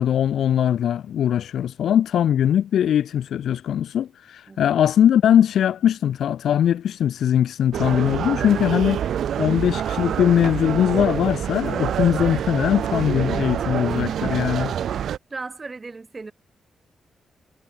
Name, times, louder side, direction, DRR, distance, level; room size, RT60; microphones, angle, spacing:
voice 1, 0.0-9.1 9.4-14.7, left 10 dB, 75° left, 0.3 m, -21 dB
sound 1, 7.7-15.2, right 9 dB, 70° right, 0.8 m, -26 dB
voice 2, 15.3-16.3, right 3 dB, 20° right, 2.5 m, -35 dB
wide cardioid pair, 165°, 0 cm